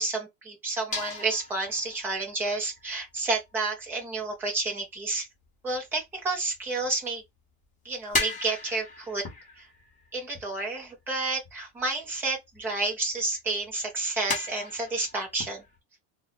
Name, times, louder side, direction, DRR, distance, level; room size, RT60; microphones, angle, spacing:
voice 1, 0.0-5.3 5.6-7.2 7.8-9.3 9.6-9.7 10.1-15.6, right 3 dB, 5° right, 0.3 m, -30 dB
sound 1, 0.9-4.2 5.2-5.8 6.0-7.4 7.6-12.9 13.2-13.3 13.6-13.8 14.3-15.8, left 3 dB, 15° left, 1.0 m, -36 dB
3.8 x 2.0 x 4.0 m
cardioid pair, 175°, 46 cm